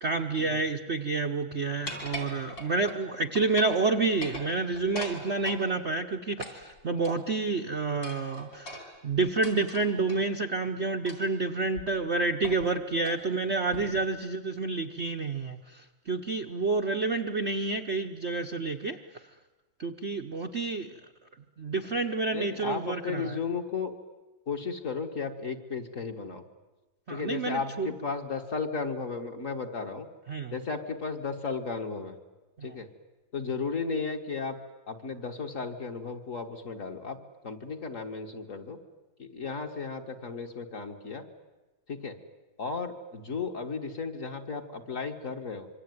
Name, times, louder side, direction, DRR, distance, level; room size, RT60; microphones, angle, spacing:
voice 1, 0.0-19.0 19.8-20.9 21.6-23.4 27.1-27.9 30.3-30.5 32.6-32.7, right 3 dB, 45° right, 4 dB, 1.0 m, -29 dB
sound 1, 1.9-3.0 3.4-3.8 4.1-5.6 6.4-7.4 8.0-10.2 11.1-11.4 11.8-11.9 12.4-12.7 13.0-13.2 13.7-14.1, left 1 dB, 60° left, 5.0 m, -41 dB
voice 2, 22.3-23.9 24.5-26.4 27.1-30.1 30.5-32.2 32.6-32.9 33.3-34.6 34.9-37.2 37.4-38.8 39.2-41.2 41.9-42.2 42.6-45.7, left 4 dB, 40° left, 4 dB, 1.9 m, -34 dB
26.5 x 24.0 x 9.4 m, 1.2 s
omnidirectional pair, 2.2 m